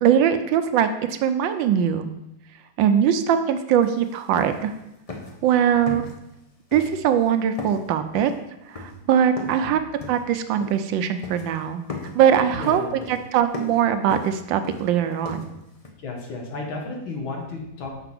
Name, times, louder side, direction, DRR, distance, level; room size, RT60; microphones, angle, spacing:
voice 1, 0.0-2.1 2.8-4.7 5.4-6.1 6.7-8.3 8.7-9.8 10.1-11.8 12.1-15.5, right 9 dB, 75° right, 9 dB, 1.3 m, -21 dB
sound 1, 3.8-3.9 4.2-4.8 5.1-5.5 5.9-6.4 6.7-7.3 7.6-9.7 10.0-10.9 11.2-11.6 11.9-15.9, left 3 dB, 50° left, 0.4 m, -37 dB
voice 2, 12.6-13.1 16.0-17.9, left 3 dB, 85° left, 1 dB, 2.2 m, -33 dB
6.8 x 4.5 x 6.0 m, 0.86 s
omnidirectional pair, 2.1 m